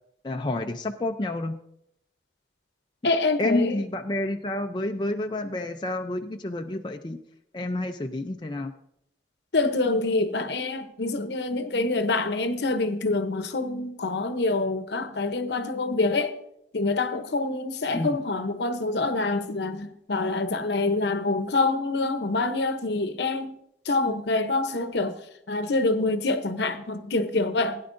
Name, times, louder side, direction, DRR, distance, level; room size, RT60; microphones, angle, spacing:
voice 1, 0.2-1.6 3.4-7.2 7.5-8.7 17.9-18.2, left 2 dB, 25° left, 0.5 m, -29 dB
voice 2, 3.0-3.8 9.5-16.3 16.7-23.5 23.8-25.2 25.5-27.8, left 3 dB, 70° left, 0.8 m, -26 dB
16.5 x 9.7 x 2.6 m
head